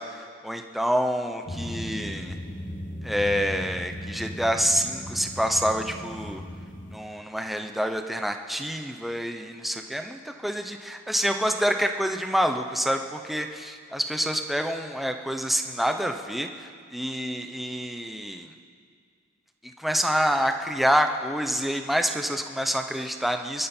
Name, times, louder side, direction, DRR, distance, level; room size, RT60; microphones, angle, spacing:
voice 1, 0.0-2.4 3.0-6.4 6.9-18.5 19.6-23.7, equal, ahead, 5 dB, 0.7 m, -27 dB
sound 1, 1.5-7.0, equal, 40° left, 1.0 m, -37 dB
24.5 x 12.5 x 4.4 m, 2.2 s
head